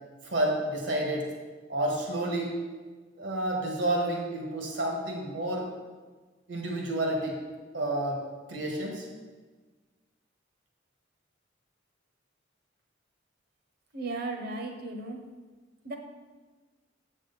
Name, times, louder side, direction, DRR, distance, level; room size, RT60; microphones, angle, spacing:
voice 1, 0.2-1.3 1.7-2.6 3.2-5.6 6.5-7.4 7.7-8.2 8.5-9.0, right 1 dB, 75° right, -1 dB, 1.6 m, -30 dB
voice 2, 13.9-15.2 15.8-16.0, right 2 dB, 55° right, 4 dB, 0.9 m, -35 dB
7.3 x 6.3 x 4.1 m, 1.4 s
head